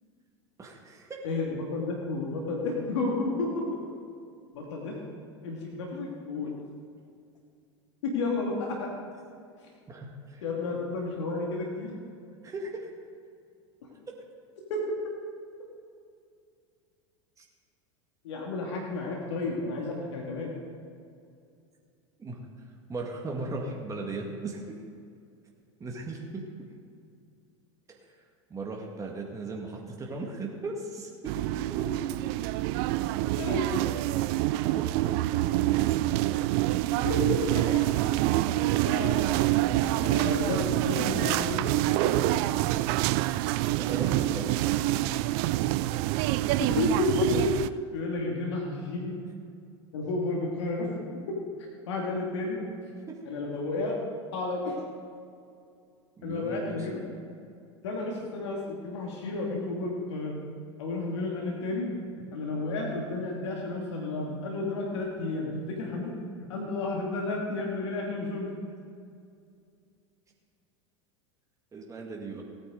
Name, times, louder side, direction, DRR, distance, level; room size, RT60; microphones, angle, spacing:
voice 1, 0.6-1.2 9.9-10.4 12.4-12.9 17.4-17.5 22.2-22.4 22.9-24.8 25.8-26.4 27.9-28.0 28.5-32.0 43.8-45.0 53.1-53.2 56.2-56.9 71.7-72.4, right 2 dB, 20° right, 0 dB, 1.9 m, -37 dB
voice 2, 1.2-3.6 4.5-5.0 5.4-6.5 8.0-8.9 10.4-11.9 13.8-14.0 14.7-14.8 18.2-20.6 33.4-33.7 37.0-37.4 38.8-39.2 40.0-42.3 46.6-47.5 47.9-49.1 49.9-50.9 51.9-52.6 53.3-54.0 54.3-54.8 56.2-57.0 57.8-60.4 60.8-61.9 62.3-66.1 66.4-68.5, left 3 dB, 70° left, -2 dB, 2.3 m, -31 dB
sound 1, 31.2-47.7, right 16 dB, 55° right, 0.4 m, -26 dB
17.0 x 9.9 x 3.9 m, 2.4 s
hypercardioid pair, 85°, 15 cm